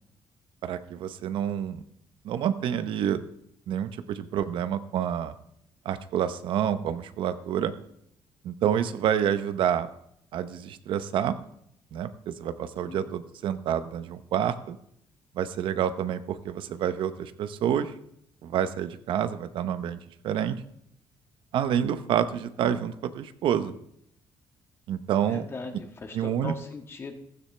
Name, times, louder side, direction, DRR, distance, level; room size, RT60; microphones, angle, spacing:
voice 1, 0.6-1.8 2.2-3.3 3.7-5.3 5.8-7.7 8.4-9.9 10.3-11.4 11.9-14.8 15.3-17.9 18.4-20.0 20.2-20.6 21.5-23.7 24.9-25.5 26.1-26.5, right 9 dB, 75° right, 11 dB, 0.8 m, -28 dB
voice 2, 25.3-27.1, left 3 dB, 30° left, 4 dB, 1.5 m, -39 dB
15.5 x 13.5 x 3.3 m, 0.72 s
cardioid pair, 155°, 9 cm